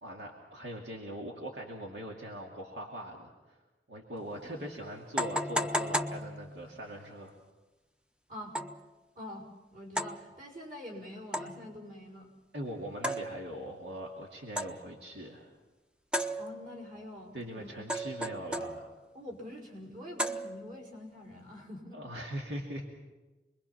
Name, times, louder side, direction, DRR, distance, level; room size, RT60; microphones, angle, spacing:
voice 1, 0.0-3.6 3.9-7.3 12.5-15.5 17.3-18.9 21.9-22.9, equal, 80° right, -1 dB, 2.6 m, -41 dB
sound 1, 4.2-4.3 5.2-6.8 8.5-8.9 10.0-10.3 11.3-11.8 13.0-13.7 14.6-15.0 16.1-16.9 17.9-19.1 20.2-20.9, equal, 5° right, 0.7 m, -35 dB
voice 2, 9.2-12.3 16.4-17.7 19.1-22.0, left 1 dB, 50° right, -1 dB, 5.6 m, -45 dB
27.5 x 21.5 x 5.9 m, 1.2 s
head